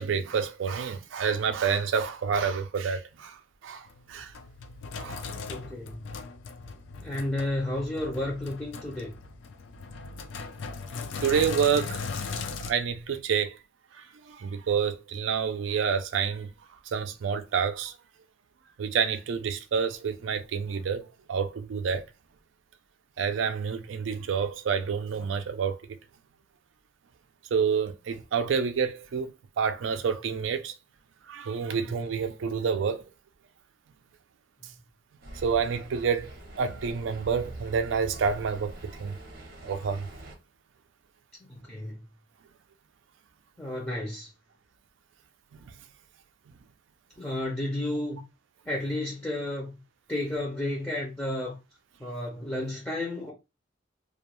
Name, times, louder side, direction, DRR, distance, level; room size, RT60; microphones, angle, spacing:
voice 1, 0.0-3.4 3.6-4.3 5.0-5.2 11.2-12.0 12.6-13.6 14.3-16.5 16.9-17.9 18.8-21.0 21.3-22.0 23.2-26.0 27.5-29.3 29.6-30.7 31.3-33.0 35.4-36.3 36.6-39.1 39.6-40.1, right 6 dB, 75° right, 0.4 m, -28 dB
Sink (filling or washing), 3.9-12.7, left 4 dB, 75° left, 0.4 m, -38 dB
voice 2, 5.4-6.1 7.0-9.1 41.5-42.0 43.6-44.3 47.2-48.2 48.7-49.8 50.1-51.6 52.0-53.3, left 1 dB, 10° left, 0.6 m, -32 dB
sound 1, 35.2-40.4, right 1 dB, 50° right, 0.7 m, -44 dB
2.4 x 2.2 x 2.9 m
head